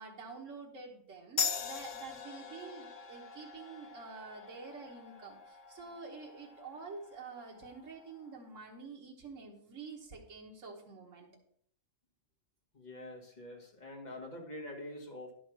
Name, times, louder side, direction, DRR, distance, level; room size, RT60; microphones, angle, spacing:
voice 1, 0.0-11.3, right 4 dB, 85° right, -2 dB, 1.7 m, -48 dB
sound 1, 1.4-8.5, left 6 dB, 75° left, 1.3 m, -42 dB
voice 2, 12.7-15.3, left 1 dB, 35° left, 1 dB, 1.9 m, -45 dB
11.0 x 5.1 x 6.0 m, 0.64 s
omnidirectional pair, 1.3 m